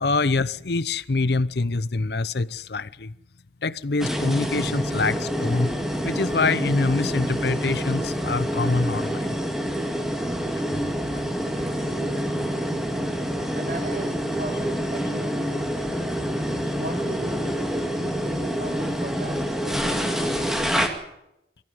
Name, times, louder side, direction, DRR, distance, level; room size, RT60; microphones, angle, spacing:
voice 1, 0.0-3.1 3.6-5.7 6.0-9.2 10.5-10.8, left 3 dB, 65° left, 0.7 m, -25 dB
sound 1, 4.0-20.9, equal, ahead, 2.2 m, -27 dB
voice 2, 11.5-12.6 13.5-16.2 16.7-20.7, right 1 dB, 50° right, 2.9 m, -38 dB
23.0 x 14.5 x 9.4 m
head